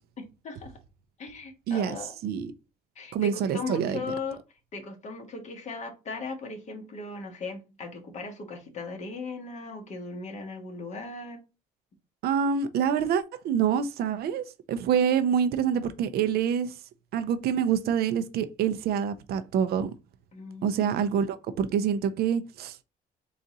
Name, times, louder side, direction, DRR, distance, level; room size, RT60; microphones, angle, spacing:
voice 1, 0.2-0.8 1.2-2.1 2.9-4.4 4.7-11.4 20.3-20.9, left 3 dB, 45° left, 1.3 m, -38 dB
voice 2, 1.7-2.0 2.2-2.5 3.1-4.1 12.2-16.8 17.1-19.9 20.6-22.8, right 8 dB, 70° right, 0.6 m, -26 dB
3.9 x 2.5 x 4.1 m
cardioid pair, 110°, 17 cm